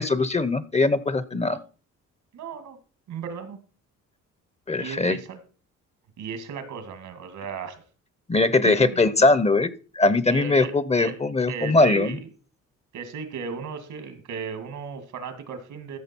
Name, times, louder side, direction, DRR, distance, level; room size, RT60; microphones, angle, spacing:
voice 1, 0.0-1.6 4.7-5.2 8.3-9.7 10.0-12.2, left 3 dB, 20° left, 16 dB, 0.8 m, -21 dB
voice 2, 2.3-2.8 3.1-3.6 4.8-5.4 6.2-7.8 8.6-9.1 10.3-11.2 11.5-12.3 12.9-16.0, right 6 dB, 75° right, 9 dB, 2.2 m, -35 dB
14.0 x 6.4 x 4.5 m, 0.37 s
cardioid pair, 90°, 30 cm